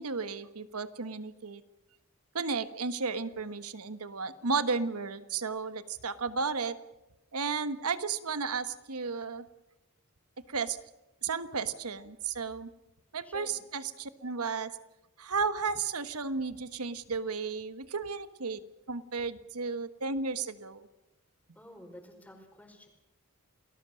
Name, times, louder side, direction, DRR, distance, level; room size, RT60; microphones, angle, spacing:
voice 1, 0.0-1.6 2.3-6.8 7.3-9.4 10.5-10.8 11.2-12.7 13.1-14.7 15.2-18.6 18.9-20.9, right 4 dB, 80° right, 12 dB, 1.4 m, -33 dB
voice 2, 13.2-13.5 21.5-22.9, left 1 dB, 5° left, 3 dB, 4.7 m, -50 dB
28.5 x 20.0 x 6.5 m, 1.0 s
head